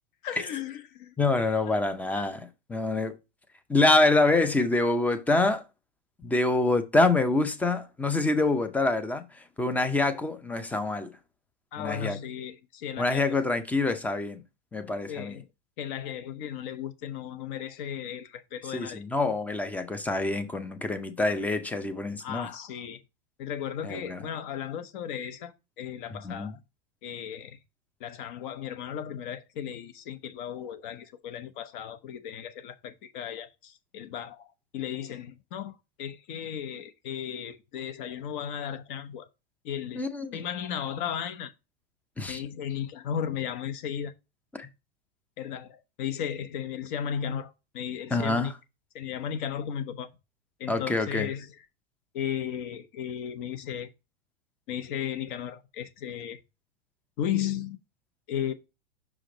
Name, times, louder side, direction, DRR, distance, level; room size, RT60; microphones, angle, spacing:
voice 1, 0.2-1.1 11.7-13.2 15.1-15.4 15.8-19.0 22.2-23.0 23.4-26.6 27.0-27.6 28.0-39.3 39.6-40.0 40.3-41.5 42.3-44.1 45.4-48.5 48.9-50.1 50.6-51.5 52.1-53.9 54.7-56.4 57.2-57.8 58.3-58.5, left 9 dB, 50° left, 1.0 m, -35 dB
voice 2, 1.2-3.2 3.7-5.6 6.2-11.1 11.8-12.2 13.0-14.4 14.7-15.4 18.7-22.5 23.8-24.3 26.1-26.5 40.0-40.4 42.2-42.4 44.5-44.7 48.1-48.5 50.7-51.3, left 2 dB, 5° left, 0.5 m, -26 dB
6.1 x 5.0 x 3.8 m
supercardioid pair, 145°, 32 cm